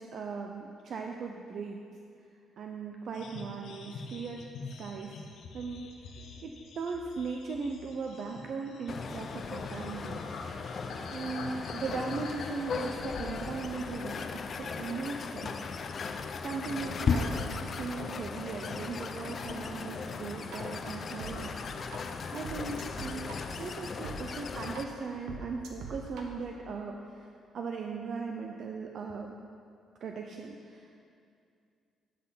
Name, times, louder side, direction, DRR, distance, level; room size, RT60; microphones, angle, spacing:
voice 1, 0.0-1.8 2.6-5.2 5.5-5.9 6.4-10.3 11.1-15.6 16.4-17.4 17.7-21.5 22.3-23.3 23.6-27.3 27.5-29.4 30.0-30.9, right 4 dB, 60° right, 2 dB, 0.6 m, -38 dB
sound 1, 3.1-14.8 15.2-15.4 15.8-17.4 17.7-18.4 18.9-19.2 19.5-19.8 20.1-20.2 20.5-20.6 20.9-22.2, left 3 dB, 80° left, 0.9 m, -47 dB
sound 2, 8.9-24.8, left 5 dB, 50° left, 0.5 m, -36 dB
sound 3, 20.5-20.6 21.2-21.3 21.9-22.0 22.4-24.2 24.7-24.8 25.3-26.2, right 6 dB, 85° right, 1.0 m, -42 dB
12.0 x 4.1 x 5.6 m, 2.4 s
cardioid pair, 90°, 0 cm